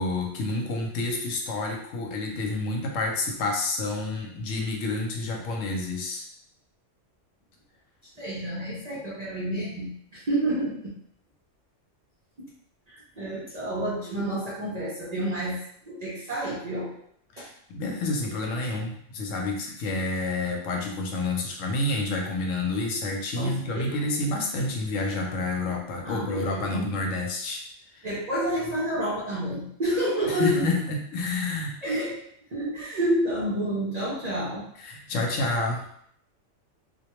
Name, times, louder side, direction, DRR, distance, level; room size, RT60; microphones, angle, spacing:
voice 1, 0.0-6.3 17.3-27.6 27.9-28.1 30.3-31.8 34.8-35.9, left 2 dB, 85° left, 1 dB, 1.0 m, -29 dB
voice 2, 8.2-10.9 12.9-17.0 17.4-17.5 23.4-24.0 26.0-27.0 28.0-30.7 31.8-32.2 32.5-34.6, right 1 dB, 50° right, -6 dB, 0.5 m, -29 dB
2.2 x 2.2 x 2.9 m, 0.66 s
omnidirectional pair, 1.3 m